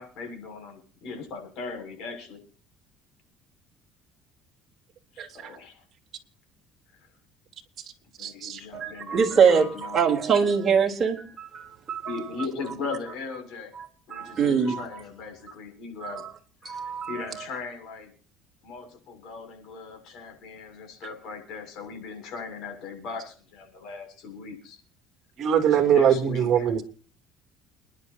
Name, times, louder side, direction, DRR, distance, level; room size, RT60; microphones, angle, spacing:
voice 1, 0.0-2.4 5.1-5.8 8.2-10.1 12.1-13.7 14.1-16.2 16.8-18.1 18.6-24.8 25.7-26.7, left 4 dB, 65° left, 6.8 m, -38 dB
voice 2, 5.2-5.5 8.2-8.6 25.4-26.8, right 8 dB, 45° right, 3.0 m, -22 dB
voice 3, 8.7-12.2 13.8-15.0 16.0-16.3 16.6-17.3, right 6 dB, 25° right, 3.9 m, -24 dB
29.0 x 11.0 x 2.9 m
cardioid pair, 125°, 0 cm